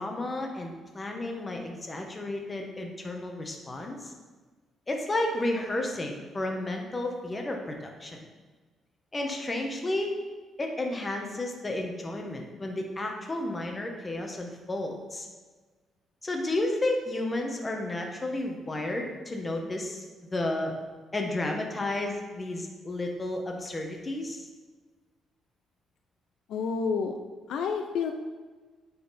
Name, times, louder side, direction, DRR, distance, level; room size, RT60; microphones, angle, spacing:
voice 1, 0.0-4.1 4.9-8.2 9.1-10.1 10.6-15.3 16.2-20.0 20.3-20.7 21.1-24.4, left 2 dB, 25° left, 2 dB, 1.3 m, -32 dB
voice 2, 26.5-27.1 27.5-28.1, left 5 dB, 80° left, 5 dB, 0.5 m, -29 dB
9.2 x 4.4 x 4.2 m, 1.3 s
cardioid pair, 90°, 0 cm